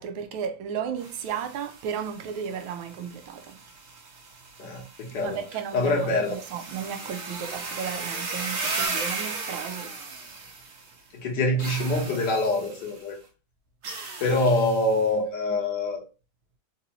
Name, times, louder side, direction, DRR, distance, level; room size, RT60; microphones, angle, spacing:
voice 1, 0.0-3.6 5.2-9.9, right 7 dB, 90° right, 1.4 m, -34 dB
sound 1, 1.0-11.0 11.6-13.0 13.8-15.1, right 4 dB, 60° right, 1.3 m, -36 dB
voice 2, 4.6-5.4 5.7-6.4 11.1-13.2 14.2-16.0, left 2 dB, 65° left, 1.6 m, -25 dB
3.9 x 2.6 x 2.7 m
omnidirectional pair, 2.1 m